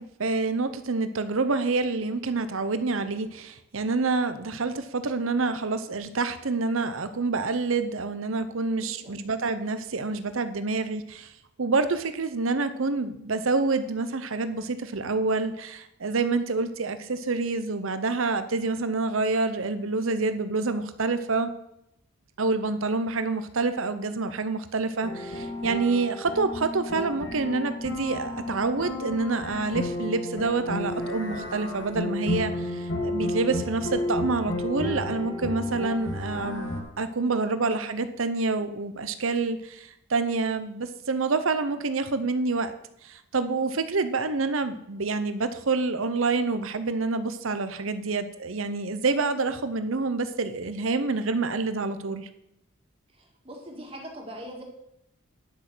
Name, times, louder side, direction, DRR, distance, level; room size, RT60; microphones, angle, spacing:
voice 1, 0.0-11.3 11.6-21.5 22.4-42.7 43.0-52.3, right 3 dB, 75° right, 11 dB, 0.8 m, -27 dB
voice 2, 8.7-9.1 37.2-37.5 53.4-54.6, equal, 25° right, 0 dB, 2.1 m, -41 dB
sound 1, 25.0-36.8, left 1 dB, 60° left, 2.0 m, -32 dB
10.5 x 6.2 x 6.2 m, 0.81 s
head